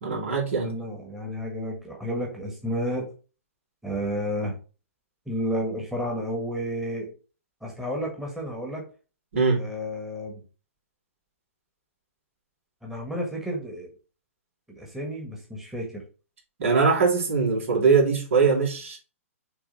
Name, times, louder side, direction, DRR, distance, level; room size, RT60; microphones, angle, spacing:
voice 1, 0.0-0.7 9.3-9.6 16.6-19.0, right 5 dB, 60° right, -2 dB, 3.3 m, -22 dB
voice 2, 0.6-3.1 3.8-4.5 5.3-7.1 7.6-8.8 9.6-10.4 12.8-13.9 14.7-16.0, equal, 5° right, -1 dB, 1.7 m, -31 dB
7.1 x 3.5 x 4.3 m, 0.35 s
figure-of-eight pair, 120°, 8 cm